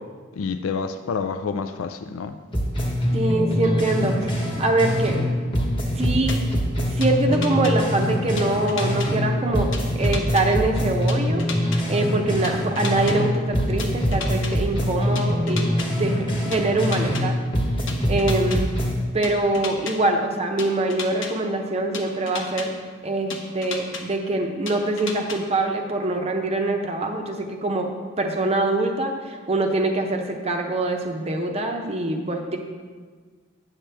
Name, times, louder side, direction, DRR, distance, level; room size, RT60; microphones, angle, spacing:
voice 1, 0.4-2.4, left 5 dB, 85° left, 9 dB, 0.4 m, -28 dB
sound 1, 2.5-5.3 5.5-9.3 9.5-13.3 13.5-17.3 17.5-19.0, equal, 25° left, 1.2 m, -24 dB
voice 2, 3.1-5.2 6.0-6.4 6.8-9.7 9.9-11.4 11.9-17.4 18.1-18.7 19.1-22.7 23.0-27.9 28.2-32.6, right 2 dB, 30° right, 3 dB, 0.6 m, -24 dB
sound 2, 6.3-6.4 7.0-7.7 8.4-9.1 9.7-10.4 11.1-11.8 12.4-13.2 13.8-14.5 15.2-15.9 16.5-17.2 17.9-18.6 19.2-19.9 20.6-21.3 21.9-22.7 23.3-24.0 24.7-25.4, left 5 dB, 65° left, 0.9 m, -33 dB
8.9 x 7.3 x 3.4 m, 1.5 s
head